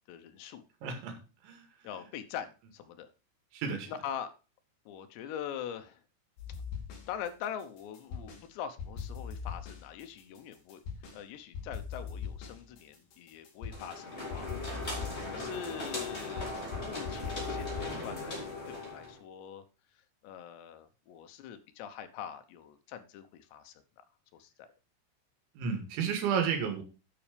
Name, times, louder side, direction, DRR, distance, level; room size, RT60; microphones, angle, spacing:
voice 1, 0.1-0.6 1.8-3.1 3.9-4.3 4.9-6.0 7.0-10.8 11.1-14.5 15.3-16.5 16.8-19.6 20.2-23.7 24.4-24.7, left 9 dB, 75° left, 9 dB, 3.1 m, -43 dB
voice 2, 0.8-1.2 1.4-1.7 3.5-3.9 25.6-26.8, right 6 dB, 85° right, 5 dB, 4.3 m, -32 dB
sound 1, 6.4-7.3 7.6-8.5 8.8-11.2 11.5-14.0 14.3-17.9, left 6 dB, 60° left, 4.1 m, -41 dB
sound 2, 13.7-19.2, left 2 dB, 15° left, 3.6 m, -38 dB
10.0 x 6.4 x 5.0 m, 0.32 s
omnidirectional pair, 5.2 m